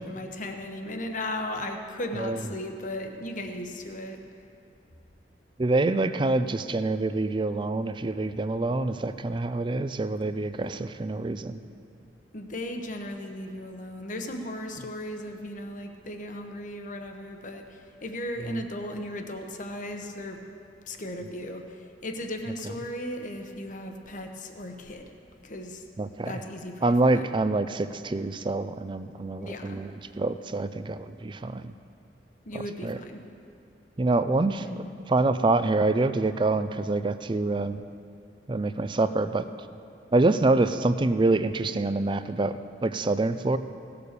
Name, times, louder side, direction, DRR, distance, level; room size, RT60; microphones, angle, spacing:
voice 1, 0.0-4.2 12.3-20.4 20.9-25.1 25.4-25.8 26.2-27.4 29.4-29.8 32.4-33.2 34.6-34.9, left 1 dB, 45° left, 4 dB, 1.0 m, -36 dB
voice 2, 5.6-11.6 18.5-18.6 26.0-26.3 26.8-31.7 32.5-33.0 34.0-37.8 38.5-39.4 40.1-43.6, right 2 dB, 25° right, 11 dB, 0.4 m, -26 dB
17.5 x 6.9 x 6.7 m, 2.6 s
head